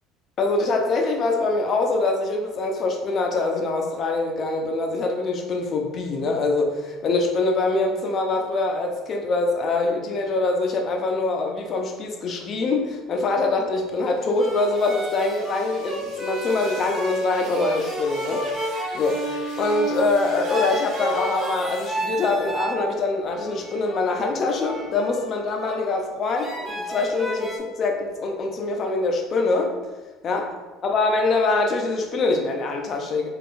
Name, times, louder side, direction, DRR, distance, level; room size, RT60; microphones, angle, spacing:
voice 1, 0.4-29.7 30.2-30.5 30.8-33.3, left 3 dB, 45° left, 3 dB, 0.5 m, -24 dB
sound 1, 14.0-21.9, right 2 dB, 85° right, 0.9 m, -45 dB
sound 2, 14.4-22.8 23.3-25.8 26.4-27.6, right 1 dB, 15° right, 0.7 m, -31 dB
3.6 x 2.4 x 2.5 m, 1.2 s
supercardioid pair, 110°, 0 cm